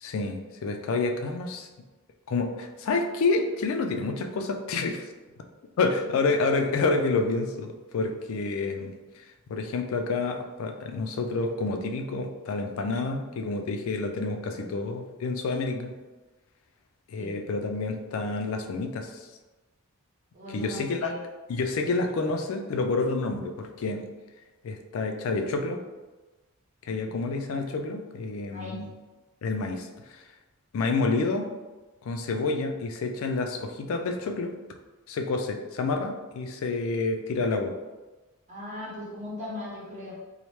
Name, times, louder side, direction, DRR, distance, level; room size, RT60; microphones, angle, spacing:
voice 1, 0.0-1.7 2.3-5.1 5.8-15.9 17.1-19.3 20.5-21.1 21.5-24.0 24.6-25.8 26.9-28.9 29.4-30.2 30.7-31.5 32.0-34.5 35.1-37.7, left 3 dB, 65° left, 5 dB, 0.3 m, -29 dB
voice 2, 20.3-21.2 27.0-27.2 28.5-28.8 38.5-40.1, left 1 dB, 35° right, -5 dB, 0.8 m, -38 dB
3.0 x 2.1 x 3.0 m, 1.2 s
head